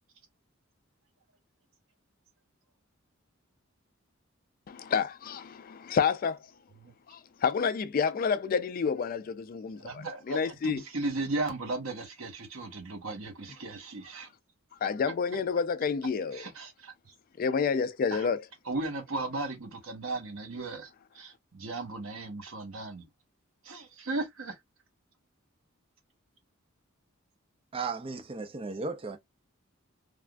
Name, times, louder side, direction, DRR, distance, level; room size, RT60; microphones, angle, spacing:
voice 1, 4.7-6.4 7.1-10.8 14.8-16.4 17.4-18.4, left 6 dB, 45° left, 0.3 m, -29 dB
voice 2, 9.8-14.3 16.3-17.1 18.1-18.3 18.6-23.1 23.6-24.6, right 2 dB, 80° right, 1.1 m, -36 dB
voice 3, 27.7-29.2, right 4 dB, 25° right, 0.4 m, -35 dB
3.4 x 2.4 x 2.2 m
head